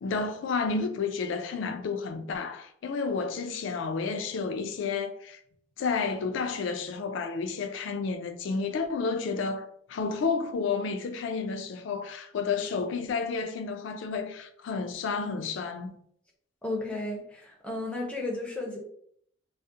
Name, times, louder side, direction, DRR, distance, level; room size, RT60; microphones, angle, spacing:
voice 1, 0.0-5.4 5.8-16.0, left 4 dB, 70° left, 0.3 m, -31 dB
voice 2, 16.6-18.8, left 2 dB, 5° left, 0.5 m, -33 dB
2.4 x 2.0 x 2.6 m
head